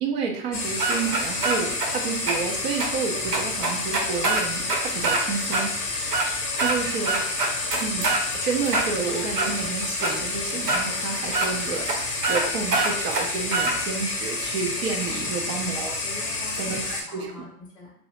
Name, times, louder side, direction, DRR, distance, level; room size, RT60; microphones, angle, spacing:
voice 1, 0.0-5.7 6.6-7.2 7.8-16.0 16.6-17.4, right 5 dB, 45° right, 2 dB, 0.6 m, -30 dB
sound 1, 0.5-17.0, left 3 dB, 35° left, 0.8 m, -29 dB
sound 2, 0.8-1.9 2.3-2.4 2.8-2.9 3.3-5.2 5.5-5.6 6.0-6.8 7.0-8.2 8.7-9.5 10.0-10.1 10.7-10.8 11.3-11.5 11.9-12.0 12.2-12.4 12.7-13.7, right 3 dB, 80° right, 0.8 m, -24 dB
voice 2, 6.8-7.2 11.3-11.4 15.1-15.6 16.0-17.9, left 2 dB, 10° left, -6 dB, 0.4 m, -44 dB
2.6 x 2.0 x 3.0 m, 0.70 s
hypercardioid pair, 115°, 47 cm